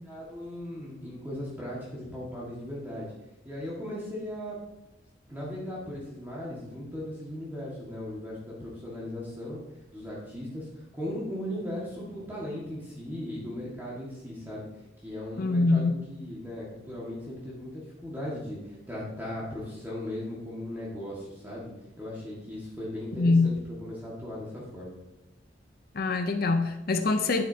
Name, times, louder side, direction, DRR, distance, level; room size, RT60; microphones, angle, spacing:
voice 1, 0.0-3.1 3.4-4.6 5.3-9.6 9.9-14.7 15.0-21.7 22.0-25.0, left 1 dB, 10° right, -6 dB, 1.7 m, -37 dB
voice 2, 15.4-16.0 23.2-23.6 25.9-27.4, left 3 dB, 55° left, 7 dB, 0.6 m, -24 dB
9.6 x 7.6 x 2.8 m, 1.0 s
head